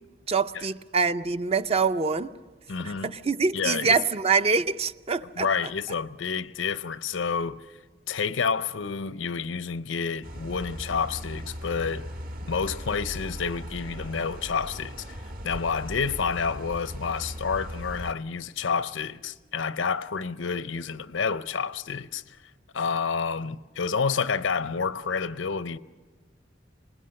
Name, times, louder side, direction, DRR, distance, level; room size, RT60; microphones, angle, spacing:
voice 1, 0.3-2.3 2.8-5.5, right 4 dB, 35° right, 0.6 m, -25 dB
voice 2, 2.7-3.1 3.5-4.0 5.4-7.6 8.1-12.1 12.5-15.2 15.4-22.4 22.7-25.8, left 5 dB, 90° left, 0.7 m, -29 dB
sound 1, 10.2-18.1, equal, 50° right, 1.7 m, -38 dB
26.5 x 20.5 x 6.5 m
head